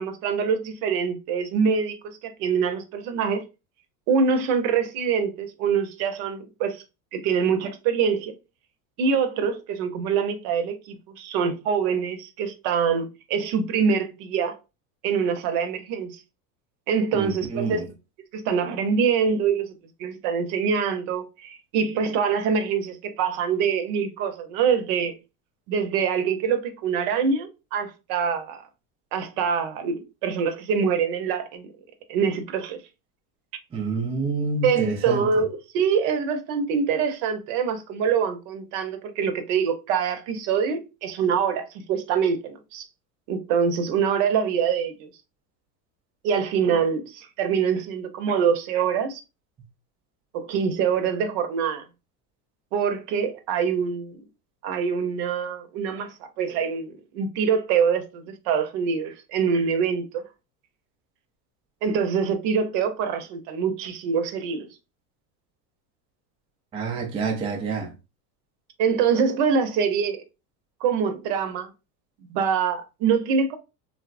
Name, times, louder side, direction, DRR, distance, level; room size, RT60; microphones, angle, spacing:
voice 1, 0.0-3.4 4.1-6.8 7.1-8.3 9.0-14.6 15.0-16.2 16.9-17.9 18.3-19.7 20.0-25.2 25.7-28.6 29.1-31.7 32.1-32.8 34.6-42.9 43.3-45.1 46.2-49.2 50.3-51.8 52.7-54.2 54.6-60.2 61.8-64.7 68.8-70.2 70.8-71.7 72.3-73.6, right 6 dB, 65° right, 0.7 m, -24 dB
voice 2, 17.1-17.8 33.7-35.3 66.7-67.9, right 4 dB, 15° right, 0.3 m, -28 dB
3.1 x 2.0 x 2.4 m
supercardioid pair, 105°, 46 cm